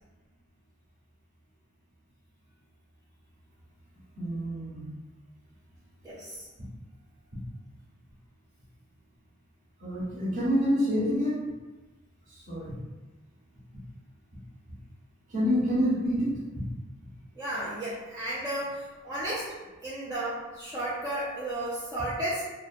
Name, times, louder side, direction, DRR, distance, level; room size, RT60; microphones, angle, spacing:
voice 1, 4.2-4.9 9.8-11.4 12.5-12.7 15.3-16.6, equal, 40° right, -7 dB, 0.8 m, -27 dB
voice 2, 6.0-6.5 17.4-19.5 19.8-22.4, right 1 dB, 15° right, -10 dB, 0.4 m, -33 dB
2.2 x 2.2 x 2.5 m, 1.2 s
head